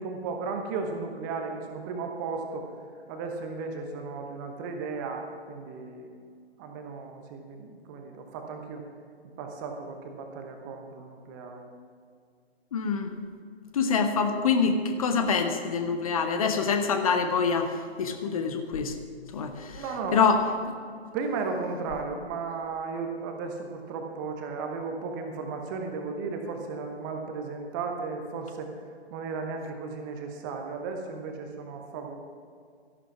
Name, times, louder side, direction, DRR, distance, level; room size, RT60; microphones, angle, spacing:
voice 1, 0.0-2.7 3.1-6.1 6.6-8.8 9.4-11.7 19.6-20.2 21.1-28.7 29.1-32.2, right 4 dB, 20° right, 4 dB, 1.0 m, -35 dB
voice 2, 12.7-13.1 13.7-19.0 19.3-19.8 20.1-20.7, left 5 dB, 35° left, 6 dB, 1.1 m, -25 dB
13.5 x 11.5 x 6.0 m, 2.2 s
figure-of-eight pair, 130°, 33 cm